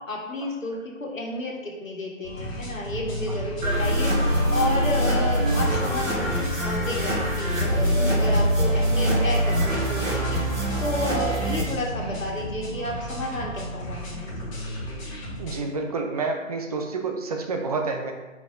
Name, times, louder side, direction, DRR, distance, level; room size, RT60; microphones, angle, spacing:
voice 1, 0.1-14.5, left 1 dB, 80° left, -1 dB, 1.6 m, -31 dB
sound 1, 2.2-15.6, equal, 25° left, 1.5 m, -34 dB
sound 2, 3.6-11.6, equal, 75° right, 2.0 m, -23 dB
voice 2, 15.4-18.1, right 3 dB, 30° right, 3 dB, 0.6 m, -28 dB
4.8 x 4.2 x 4.7 m, 1.2 s
figure-of-eight pair, 135°, 39 cm